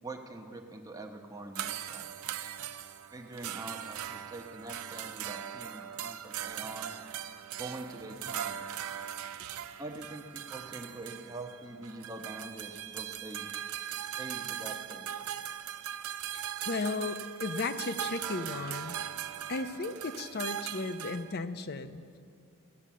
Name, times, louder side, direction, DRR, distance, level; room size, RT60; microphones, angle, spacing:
voice 1, 0.0-2.1 3.1-7.0 7.6-8.8 9.8-13.5 14.2-15.1, right 2 dB, 15° right, 3 dB, 0.9 m, -44 dB
sound 1, 1.5-21.4, right 10 dB, 80° right, 0.5 m, -40 dB
voice 2, 16.3-19.0 19.5-22.0, left 3 dB, 45° left, 11 dB, 0.6 m, -35 dB
15.5 x 8.0 x 7.4 m, 2.3 s
head